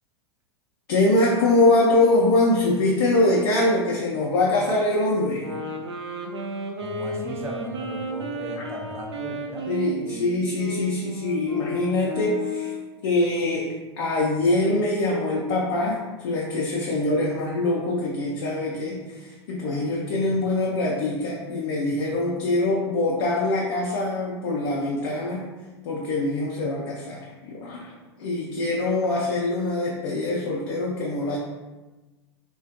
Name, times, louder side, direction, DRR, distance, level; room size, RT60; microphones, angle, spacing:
voice 1, 0.9-5.5 8.6-8.7 9.7-12.7 13.0-25.4 25.8-27.9 28.2-31.4, left 2 dB, 60° left, -3 dB, 0.5 m, -23 dB
sound 1, 5.4-12.9, left 1 dB, 80° right, 0.4 m, -33 dB
voice 2, 6.8-9.7 20.3-20.4, right 1 dB, 20° right, 0 dB, 0.5 m, -36 dB
2.4 x 2.2 x 2.5 m, 1.2 s
figure-of-eight pair, 90°, 14 cm